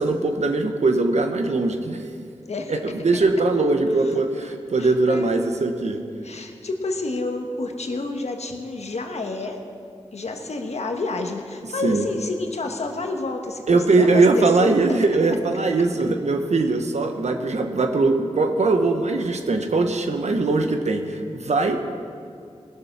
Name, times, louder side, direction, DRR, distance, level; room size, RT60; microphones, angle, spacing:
voice 1, 0.0-2.1 2.7-6.0 11.8-12.1 13.7-21.8, right 3 dB, 80° right, 5 dB, 1.1 m, -21 dB
voice 2, 4.8-5.4 6.2-9.6 10.1-14.7, left 3 dB, 75° left, 3 dB, 1.3 m, -29 dB
19.0 x 6.8 x 5.9 m, 2.4 s
cardioid pair, 50°, 11 cm